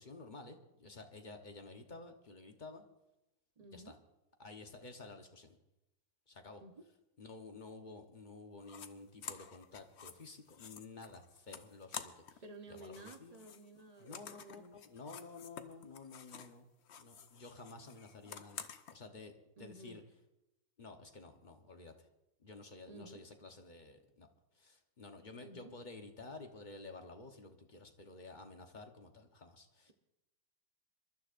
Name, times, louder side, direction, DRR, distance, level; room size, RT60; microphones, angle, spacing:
voice 1, 0.0-2.8 3.7-4.0 4.4-5.6 6.3-6.6 7.2-12.4 12.7-13.4 14.0-16.7 17.0-20.0 20.8-22.1 22.4-24.3 24.5-29.9, left 3 dB, 35° left, 5 dB, 0.8 m, -52 dB
voice 2, 3.6-3.9 6.6-6.8 12.4-14.8 19.6-20.0 22.9-23.2 25.4-25.7, right 2 dB, 40° right, 5 dB, 0.5 m, -53 dB
sound 1, 8.6-8.9 9.2-12.4 12.7-16.6 16.8-18.9, left 7 dB, 65° left, 0.6 m, -50 dB
26.5 x 12.5 x 2.5 m, 0.93 s
omnidirectional pair, 2.0 m